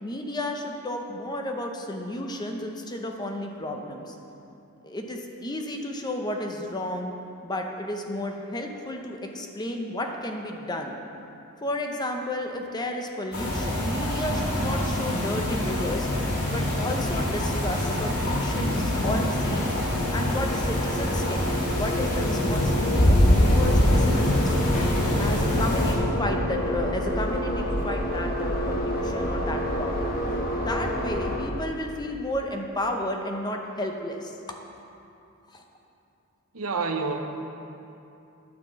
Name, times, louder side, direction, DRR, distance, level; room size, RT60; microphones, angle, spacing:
voice 1, 0.0-4.1 4.8-7.1 7.4-11.0 11.6-16.1 16.5-19.7 20.1-24.8 25.2-30.2 30.6-34.3 35.5-35.6, left 1 dB, 20° left, 3 dB, 0.7 m, -32 dB
sound 1, 13.3-25.9, left 1 dB, 80° left, 2.2 m, -24 dB
sound 2, 18.1-31.4, equal, 45° left, 1.2 m, -30 dB
voice 2, 36.5-37.2, right 4 dB, 75° right, 4 dB, 0.9 m, -28 dB
9.6 x 5.9 x 7.3 m, 2.7 s
head